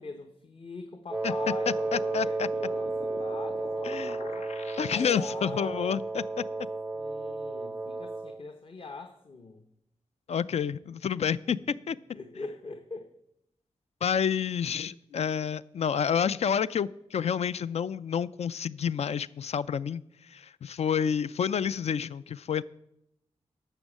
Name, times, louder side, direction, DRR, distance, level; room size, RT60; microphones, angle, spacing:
voice 1, 0.0-4.5 4.9-5.8 6.9-9.6 11.4-11.5 12.1-13.1 15.1-15.3, left 3 dB, 50° left, 6 dB, 1.0 m, -43 dB
Wind instrument woodwind instrument, 1.1-8.4, right 3 dB, 10° right, 0.4 m, -33 dB
voice 2, 1.7-2.5 3.8-4.2 4.8-6.4 10.3-11.6 11.9-12.0 14.0-20.0 20.3-22.6, left 7 dB, 70° left, 17 dB, 0.4 m, -29 dB
sound 1, 2.2-5.7, left 4 dB, 85° left, 1.0 m, -47 dB
11.5 x 7.1 x 7.3 m, 0.81 s
wide cardioid pair, 75°, 11 cm